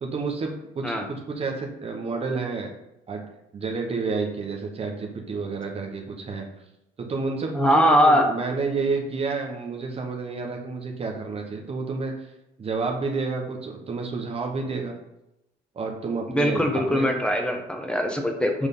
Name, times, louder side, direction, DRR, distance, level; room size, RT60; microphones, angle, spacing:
voice 1, 0.0-2.7 3.1-3.2 3.5-6.4 7.0-12.1 12.6-14.9 15.7-17.1, right 4 dB, 35° right, 1 dB, 1.1 m, -30 dB
voice 2, 7.5-8.3 16.3-18.7, equal, 5° left, 3 dB, 1.1 m, -21 dB
6.4 x 3.5 x 5.4 m, 0.87 s
cardioid pair, 110°, 17 cm